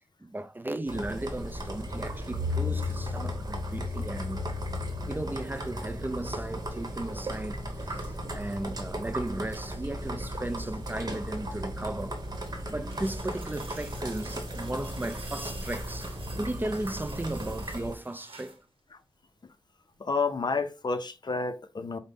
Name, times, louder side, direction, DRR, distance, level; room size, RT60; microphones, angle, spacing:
voice 1, 0.2-4.5 5.1-12.2 12.7-18.6, right 1 dB, 20° right, 0.4 m, -36 dB
sound 1, 0.9-17.9, left 1 dB, 45° right, 1.0 m, -35 dB
sound 2, 12.0-18.7 19.9-20.0, right 3 dB, 70° right, 0.8 m, -49 dB
voice 2, 20.0-22.0, left 4 dB, 50° left, 0.5 m, -30 dB
5.0 x 2.1 x 3.4 m
cardioid pair, 45°, 10 cm